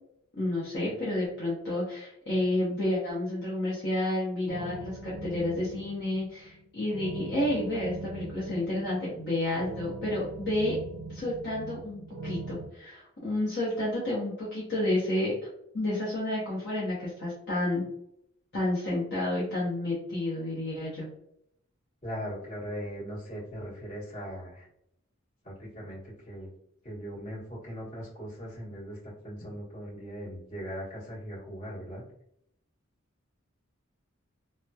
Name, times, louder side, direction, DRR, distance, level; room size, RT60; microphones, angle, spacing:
voice 1, 0.4-10.8 11.1-15.5 15.7-17.8 18.5-21.1, left 1 dB, 55° left, -7 dB, 0.8 m, -30 dB
sound 1, 4.5-12.7, right 2 dB, 55° right, 0.4 m, -41 dB
voice 2, 22.0-24.7 25.4-26.5 26.8-32.0, equal, 40° left, -8 dB, 1.5 m, -39 dB
3.0 x 2.1 x 2.2 m, 0.75 s
head